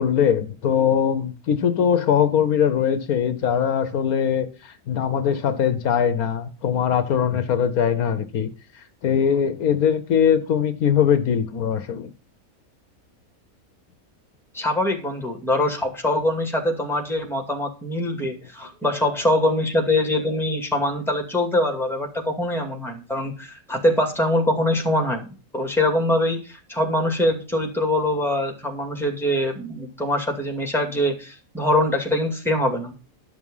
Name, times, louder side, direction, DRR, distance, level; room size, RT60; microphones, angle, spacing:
voice 1, 0.0-8.5 9.0-12.1, left 8 dB, 80° left, 1.4 m, -21 dB
voice 2, 14.5-25.3 25.5-32.9, left 1 dB, ahead, 2.2 m, -23 dB
11.5 x 6.3 x 5.4 m
omnidirectional pair, 1.5 m